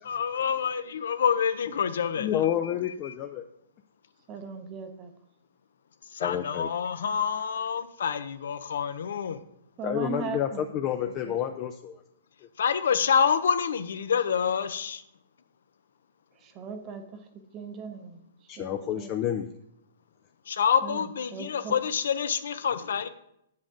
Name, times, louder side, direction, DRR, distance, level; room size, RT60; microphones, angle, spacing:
voice 1, 0.1-3.1 6.1-9.4 12.6-15.0 20.5-23.1, left 7 dB, 75° left, 12 dB, 0.6 m, -27 dB
voice 2, 2.2-3.4 6.2-6.7 9.8-12.0 18.5-19.5, left 10 dB, 25° left, 5 dB, 0.4 m, -29 dB
voice 3, 4.3-5.1 9.8-10.9 11.3-11.4 16.4-17.2 17.5-18.7 19.0-19.1 20.8-21.7, right 6 dB, 25° right, 8 dB, 0.7 m, -39 dB
7.6 x 7.5 x 3.7 m, 0.75 s
hypercardioid pair, 160°, 0 cm